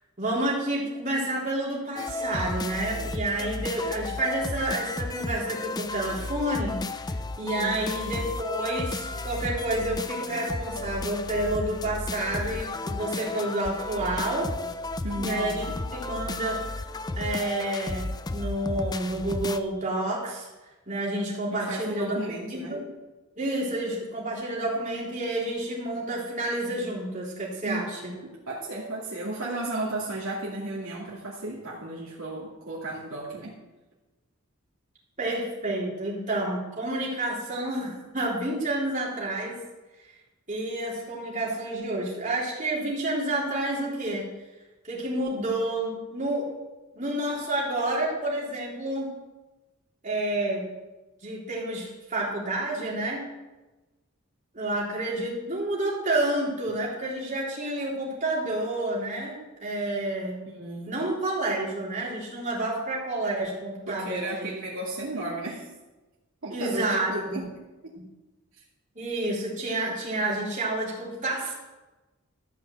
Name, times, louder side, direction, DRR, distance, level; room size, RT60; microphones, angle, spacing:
voice 1, 0.2-6.8 7.4-14.5 15.2-16.6 17.2-20.5 20.9-22.2 22.5-22.9 23.4-28.1 35.2-39.6 40.5-44.3 44.8-46.5 46.9-49.1 50.0-50.7 51.2-53.2 54.5-60.4 60.9-64.5 66.5-67.4 69.0-71.5, right 1 dB, 35° right, -5 dB, 3.7 m, -29 dB
sound 1, 2.0-19.6, left 2 dB, 20° left, 0.4 m, -33 dB
voice 2, 15.0-15.8 21.5-22.8 27.6-33.5 60.5-61.0 63.9-65.7 66.4-67.5 67.8-67.9, right 1 dB, 70° right, -7 dB, 2.6 m, -34 dB
13.5 x 5.8 x 7.8 m, 1.1 s
head